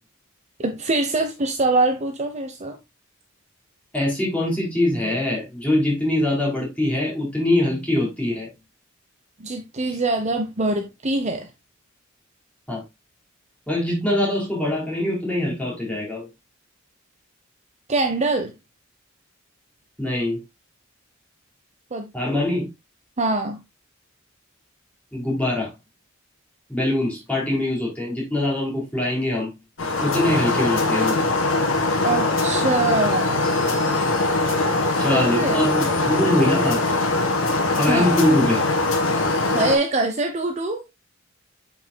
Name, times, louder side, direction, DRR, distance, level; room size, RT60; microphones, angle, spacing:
voice 1, 0.6-2.8 9.4-11.5 17.9-18.5 21.9-22.0 23.2-23.6 32.0-33.5 34.9-35.6 37.9-38.2 39.5-40.8, right 2 dB, 35° right, 0.8 m, -23 dB
voice 2, 3.9-8.5 12.7-12.8 13.7-16.3 20.0-20.4 22.1-22.7 25.1-25.7 26.7-29.5 30.0-31.2 35.0-36.8 37.8-38.6, left 1 dB, 5° left, 4.1 m, -23 dB
sound 1, 29.8-39.8, left 2 dB, 70° left, 1.8 m, -22 dB
8.6 x 5.9 x 2.2 m
head